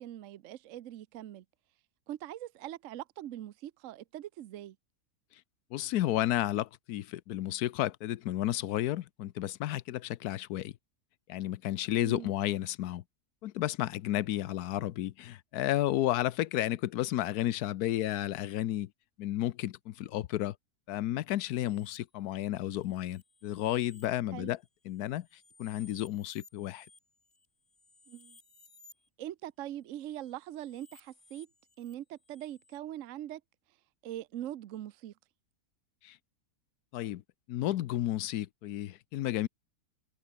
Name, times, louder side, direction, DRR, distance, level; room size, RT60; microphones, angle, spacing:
voice 1, 0.0-1.4 2.1-4.8 12.0-12.3 24.3-24.5 28.1-28.4 29.2-31.5 31.8-33.4 34.0-35.1, right 12 dB, 65° right, 1.0 m, -42 dB
voice 2, 5.7-10.7 11.3-13.0 13.4-18.9 19.2-20.5 20.9-24.6 24.9-25.3 25.6-26.9 36.0-36.2 36.9-37.2 37.5-39.5, left 14 dB, 90° left, 1.2 m, -32 dB
sound 1, 21.4-22.0 22.6-24.1 24.6-29.1 30.0-32.8, left 3 dB, 45° left, 3.2 m, -61 dB
open air
omnidirectional pair, 1.6 m